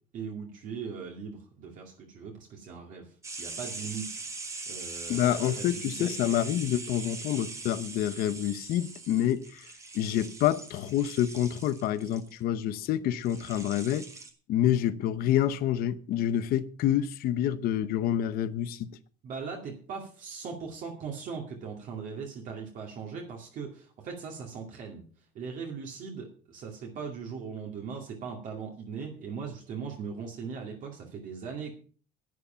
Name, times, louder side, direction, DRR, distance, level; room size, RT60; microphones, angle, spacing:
voice 1, 0.1-3.1 3.4-4.2 4.7-6.2 19.2-25.0 25.3-31.7, right 5 dB, 45° right, 2.3 m, -39 dB
sound 1, 3.2-12.3 13.2-14.3, right 3 dB, 15° right, 1.6 m, -41 dB
voice 2, 5.1-9.7 9.9-14.1 14.5-18.9, left 11 dB, 50° left, 0.9 m, -27 dB
11.0 x 9.9 x 5.6 m
cardioid pair, 175°, 19 cm